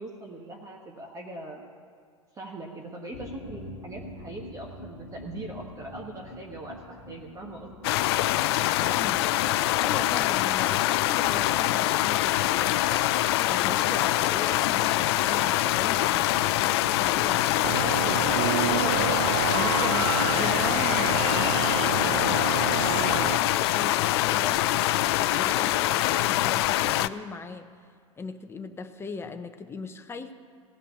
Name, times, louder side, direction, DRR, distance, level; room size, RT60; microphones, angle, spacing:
voice 1, 0.0-1.6 2.3-7.8 22.8-23.2, right 2 dB, 20° right, 0 dB, 1.4 m, -41 dB
sound 1, 3.1-18.5 18.8-18.9 19.2-19.3, left 1 dB, 85° left, 1.1 m, -48 dB
sound 2, 7.8-27.1, left 15 dB, 55° left, 0.4 m, -24 dB
voice 2, 8.8-13.0 13.5-17.6 19.5-21.6 22.0-27.7 28.2-30.3, left 4 dB, 15° left, 8 dB, 0.8 m, -39 dB
sound 3, 16.2-23.4, right 10 dB, 55° right, 0.6 m, -29 dB
17.0 x 5.6 x 9.6 m, 2.2 s
figure-of-eight pair, 90°, 16 cm